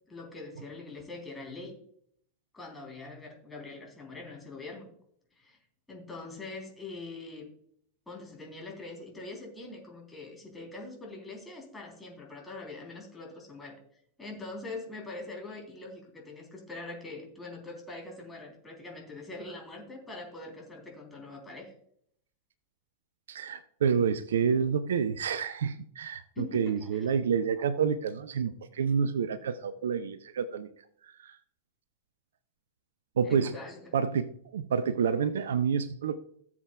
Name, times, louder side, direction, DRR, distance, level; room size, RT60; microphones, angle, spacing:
voice 1, 0.1-1.8 2.5-4.9 5.4-5.6 5.9-7.5 8.1-13.8 14.2-21.7 26.4-27.1 33.2-33.9, left 3 dB, 10° left, -1 dB, 3.5 m, -43 dB
voice 2, 23.3-30.7 31.0-31.4 33.2-33.5 33.9-36.2, right 6 dB, 65° right, 15 dB, 0.5 m, -28 dB
16.0 x 7.3 x 2.4 m, 0.66 s
figure-of-eight pair, 90°, 0 cm